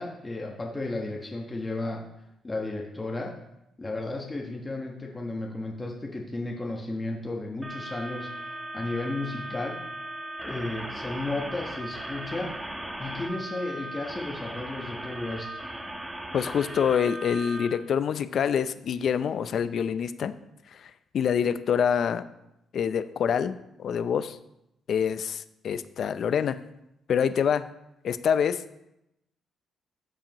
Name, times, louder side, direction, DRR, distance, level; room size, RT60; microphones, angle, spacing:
voice 1, 0.0-2.0 2.4-3.3 3.8-9.8 10.4-12.6 13.0-15.5, left 2 dB, 20° left, -1 dB, 1.2 m, -33 dB
sound 1, 7.6-17.7, right 1 dB, 10° right, 1.0 m, -37 dB
voice 2, 16.3-20.3 20.7-22.2 22.7-24.4 24.9-26.6 27.1-27.7 28.0-28.6, left 7 dB, 60° left, 12 dB, 0.5 m, -26 dB
12.5 x 7.2 x 3.0 m, 0.86 s
cardioid pair, 115°, 0 cm